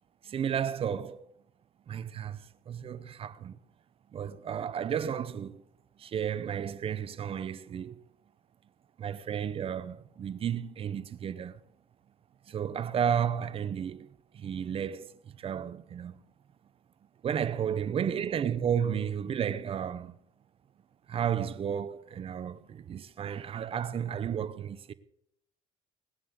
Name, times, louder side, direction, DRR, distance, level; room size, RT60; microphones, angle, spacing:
voice 1, 0.2-1.2 1.9-3.6 4.1-5.6 6.0-8.1 9.0-11.6 12.5-16.2 17.2-20.2 21.1-24.9, right 8 dB, 45° right, 0.8 m, -33 dB
19.0 x 7.5 x 6.5 m
supercardioid pair, 95°, 14 cm